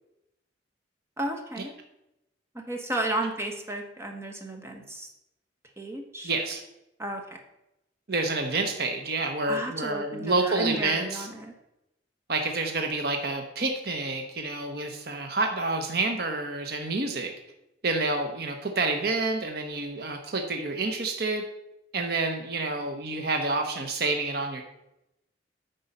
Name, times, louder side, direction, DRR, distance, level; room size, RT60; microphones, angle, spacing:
voice 1, 1.2-1.7 2.5-5.1 5.8-6.3 7.0-7.4 9.5-11.5, right 1 dB, 15° right, 3 dB, 1.1 m, -33 dB
voice 2, 6.2-6.6 8.1-11.3 12.3-17.3 17.8-21.4 21.9-24.6, right 3 dB, 55° right, 4 dB, 0.9 m, -28 dB
9.0 x 5.4 x 5.5 m, 0.89 s
head